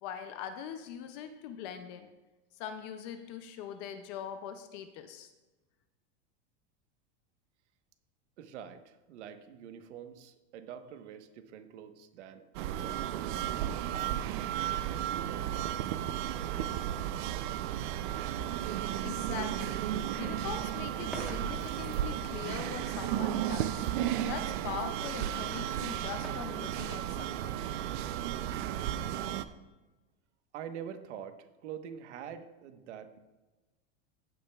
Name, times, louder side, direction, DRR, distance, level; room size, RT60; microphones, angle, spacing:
voice 1, 0.0-2.1 2.6-5.3 18.4-18.5 19.0-19.9 20.2-23.9 24.3-27.6, left 8 dB, 25° left, 8 dB, 0.3 m, -42 dB
voice 2, 8.4-13.2 13.9-14.4 14.9-16.8 30.5-33.2, right 8 dB, 80° right, 8 dB, 1.2 m, -46 dB
sound 1, 12.5-29.4, right 11 dB, 50° right, 0.5 m, -34 dB
sound 2, 20.9-22.5 25.2-28.2, right 2 dB, 5° right, 1.1 m, -47 dB
15.0 x 8.8 x 2.3 m, 1.1 s
supercardioid pair, 170°, 34 cm